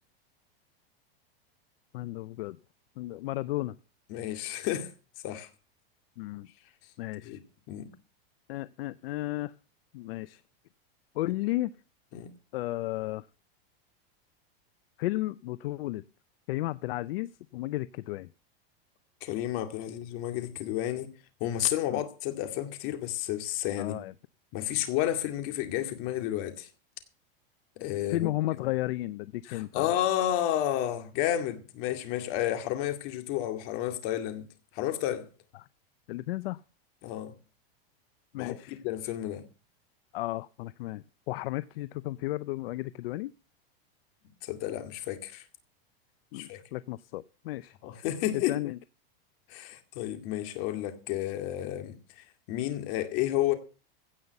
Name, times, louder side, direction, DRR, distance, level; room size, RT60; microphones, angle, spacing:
voice 1, 1.9-2.6 3.0-3.8 6.2-6.5 7.0-7.4 8.5-9.5 9.9-10.4 11.1-11.7 12.5-13.3 15.0-16.0 16.5-18.3 21.9-22.0 23.8-24.1 28.1-29.9 36.1-36.6 38.3-38.8 40.1-43.3 46.3-47.8 48.5-48.8, left 17 dB, 70° left, 0.6 m, -33 dB
voice 2, 4.1-4.9 5.2-5.5 7.2-7.4 7.7-7.9 12.1-12.3 19.2-21.1 21.4-24.0 24.5-26.7 27.8-28.3 29.4-34.5 34.7-35.3 37.0-37.3 38.3-39.4 44.4-45.4 46.3-46.6 47.8-48.6 49.5-53.5, left 12 dB, 45° left, 2.2 m, -31 dB
16.5 x 5.8 x 8.1 m
supercardioid pair, 160°, 30 cm